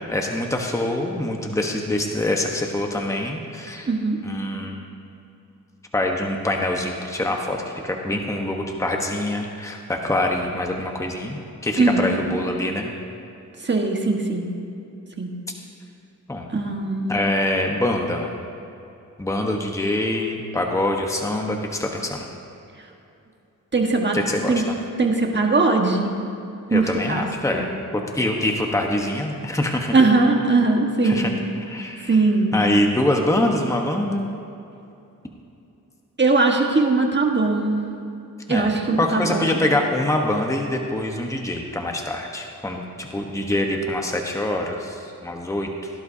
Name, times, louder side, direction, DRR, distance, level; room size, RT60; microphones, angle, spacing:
voice 1, 0.1-3.9 4.2-4.8 5.9-12.9 16.3-16.5 17.1-18.3 19.2-22.3 24.1-24.6 26.7-27.7 27.9-29.9 31.0-31.3 31.7-32.2 32.5-34.3 38.5-45.9, left 1 dB, 10° left, 1 dB, 1.1 m, -24 dB
voice 2, 3.9-4.2 11.8-12.1 13.6-14.5 15.2-15.3 16.5-17.2 23.7-24.2 24.5-24.6 25.0-26.1 26.7-27.7 29.9-31.3 32.1-32.5 36.2-37.8 38.5-39.6, right 3 dB, 35° right, 1 dB, 1.5 m, -20 dB
17.5 x 11.0 x 2.8 m, 2.7 s
wide cardioid pair, 85°, 33 cm